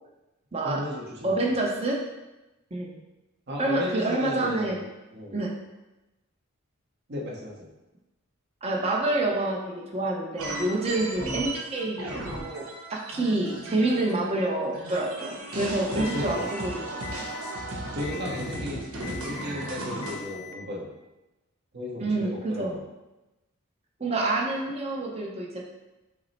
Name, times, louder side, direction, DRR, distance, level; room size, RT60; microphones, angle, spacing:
voice 1, 0.6-1.5 3.5-4.8 5.1-5.3 7.1-7.7 15.9-16.5 17.9-18.8 19.0-20.9 21.7-22.8, left 1 dB, 50° right, -3 dB, 1.0 m, -35 dB
voice 2, 1.2-2.0 2.7-3.0 3.6-4.8 5.3-5.6 8.6-17.3 22.0-22.7 24.0-25.6, right 2 dB, 30° right, -2 dB, 0.7 m, -28 dB
sound 1, 10.4-14.5 14.7-20.2, right 1 dB, 85° right, 1.0 m, -35 dB
Alarm, 16.0-16.5 17.0-17.5 18.0-18.5 19.0-19.5 20.0-20.5, left 10 dB, 90° left, 0.5 m, -42 dB
6.0 x 2.1 x 4.1 m, 1.0 s
head